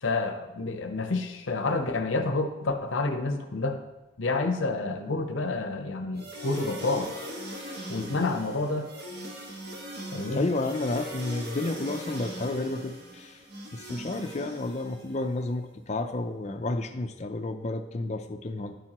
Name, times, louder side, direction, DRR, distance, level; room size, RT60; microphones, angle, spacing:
voice 1, 0.0-3.8 4.2-7.1 7.9-8.9 10.1-10.5, left 3 dB, 80° left, 6 dB, 0.7 m, -29 dB
sound 1, 6.2-15.3, equal, 55° right, 1.5 m, -40 dB
voice 2, 10.3-13.4 13.7-18.8, left 2 dB, 35° left, 6 dB, 0.5 m, -31 dB
10.5 x 8.8 x 3.0 m, 1.1 s
head